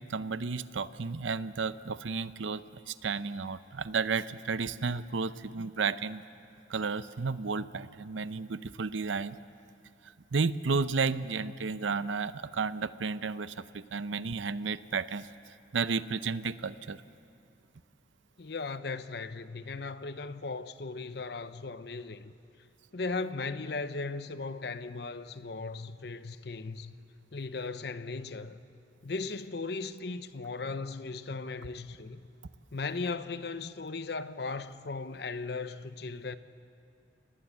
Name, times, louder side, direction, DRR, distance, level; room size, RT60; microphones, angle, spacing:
voice 1, 0.1-6.2 6.7-9.4 10.3-15.3 15.7-17.0, right 4 dB, 80° right, 0.7 m, -32 dB
voice 2, 18.4-22.3 22.9-26.9 27.3-28.6 29.0-32.2 32.7-36.4, left 3 dB, 60° left, 0.7 m, -37 dB
28.5 x 19.5 x 7.3 m
head